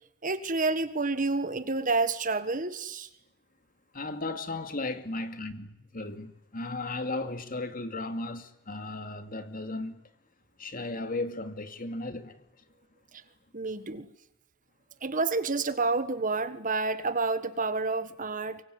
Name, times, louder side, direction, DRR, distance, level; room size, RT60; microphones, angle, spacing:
voice 1, 0.2-3.1 13.5-14.1 15.0-18.6, right 3 dB, 40° right, 1.5 m, -29 dB
voice 2, 3.9-10.0 10.6-12.4, left 2 dB, 40° left, 2.4 m, -35 dB
24.5 x 23.5 x 9.6 m
head